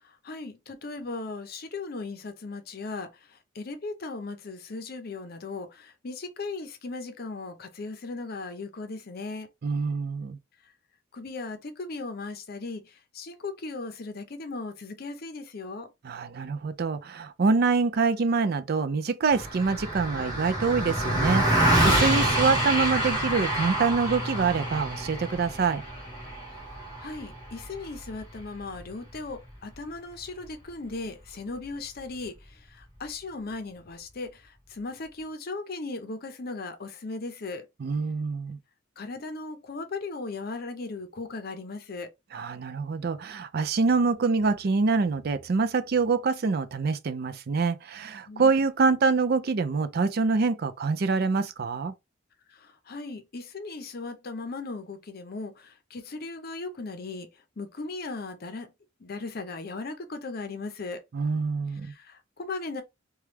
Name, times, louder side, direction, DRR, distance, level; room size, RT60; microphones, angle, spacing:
voice 1, 0.0-9.5 10.6-10.7 11.1-15.9 26.7-37.7 39.0-42.1 48.3-48.5 52.5-58.7 59.0-61.0 61.7-62.8, left 3 dB, 50° left, 0.6 m, -37 dB
voice 2, 9.6-10.4 16.0-25.8 37.8-38.6 42.3-51.9 61.1-61.9, right 4 dB, 50° right, 0.4 m, -25 dB
Car passing by, 19.3-28.9, right 1 dB, 20° right, 1.6 m, -27 dB
3.0 x 2.3 x 3.3 m
head